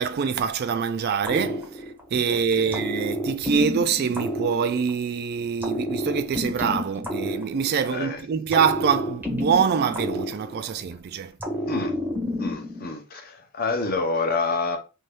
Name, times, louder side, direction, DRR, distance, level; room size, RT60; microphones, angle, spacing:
voice 1, 0.0-1.8 2.1-11.3, right 6 dB, 50° right, 0.3 m, -25 dB
sound 1, 1.2-2.2 2.7-5.1 5.6-8.0 8.5-10.9 11.4-12.9, left 1 dB, 10° right, 0.7 m, -30 dB
voice 2, 2.3-2.8 7.9-8.3 11.7-11.9 12.4-14.8, left 3 dB, 45° left, 0.7 m, -28 dB
2.7 x 2.3 x 3.2 m
head